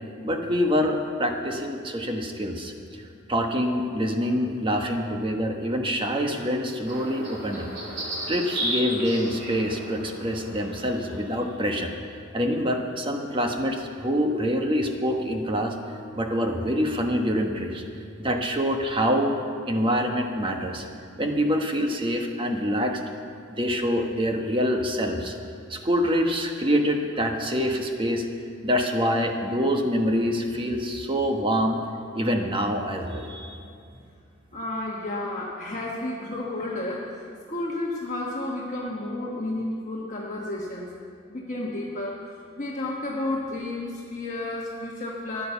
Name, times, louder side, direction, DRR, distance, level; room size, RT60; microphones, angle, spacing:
voice 1, 0.2-2.7 3.3-7.7 8.3-11.9 12.3-15.7 16.1-17.8 18.2-19.4 19.7-20.8 21.2-23.0 23.6-25.3 25.7-28.3 28.6-31.8 32.1-33.6, equal, 25° right, 3 dB, 1.2 m, -25 dB
sound 1, 6.8-11.7, right 1 dB, 55° right, 3.4 m, -34 dB
voice 2, 34.5-41.0 41.3-42.3 42.6-45.5, left 2 dB, 40° left, -3 dB, 1.3 m, -32 dB
14.5 x 10.0 x 7.0 m, 2.3 s
head